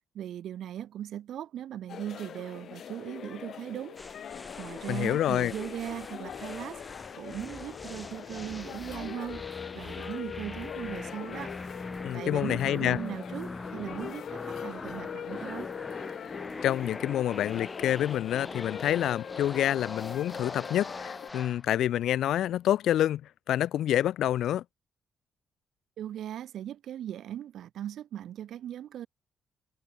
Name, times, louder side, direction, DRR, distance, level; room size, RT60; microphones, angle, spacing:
voice 1, 0.1-4.0 4.6-6.8 7.1-9.4 9.7-11.5 12.1-15.7 26.0-29.1, right 11 dB, 75° right, 4.0 m, -38 dB
sound 1, 1.9-21.3, left 8 dB, 65° left, 1.5 m, -42 dB
sound 2, 4.0-21.6, left 3 dB, 20° left, 1.9 m, -42 dB
voice 2, 4.9-5.5 12.0-13.0 16.6-23.2 23.5-24.6, left 12 dB, 80° left, 0.7 m, -27 dB
cardioid pair, 85°, 0 cm